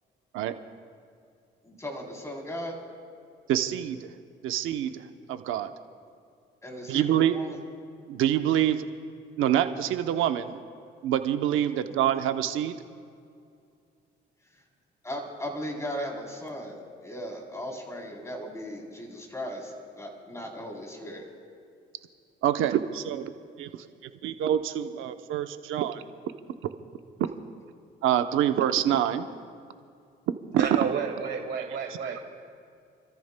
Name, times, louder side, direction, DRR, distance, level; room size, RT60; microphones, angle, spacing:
voice 1, 1.6-2.9 6.6-7.6 15.0-21.2, equal, 15° left, -1 dB, 3.4 m, -37 dB
voice 2, 3.5-4.1 4.4-5.7 6.9-7.3 8.1-8.9 9.4-10.6 11.0-12.8 22.4-23.3 23.6-23.9 24.2-26.0 26.6-26.7 28.0-29.3 30.5-30.9, right 11 dB, 90° right, 9 dB, 0.7 m, -26 dB
voice 3, 30.6-32.3, right 6 dB, 60° right, 3 dB, 1.2 m, -31 dB
30.0 x 14.0 x 2.2 m, 2.4 s
cardioid pair, 90°, 20 cm